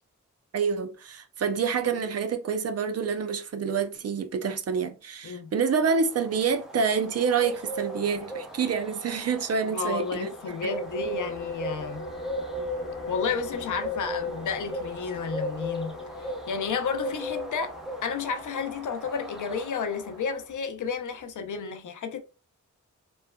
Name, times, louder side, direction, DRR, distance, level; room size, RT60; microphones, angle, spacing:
voice 1, 0.5-10.8, right 6 dB, 55° right, 0.5 m, -27 dB
Bird, 5.8-20.5, equal, ahead, 0.7 m, -37 dB
voice 2, 9.7-12.1 13.1-16.0 16.5-17.8 18.0-22.2, left 6 dB, 75° left, 0.5 m, -31 dB
sound 1, 10.3-21.6, left 1 dB, 40° left, 0.8 m, -42 dB
3.1 x 2.1 x 2.2 m
cardioid pair, 60°, 31 cm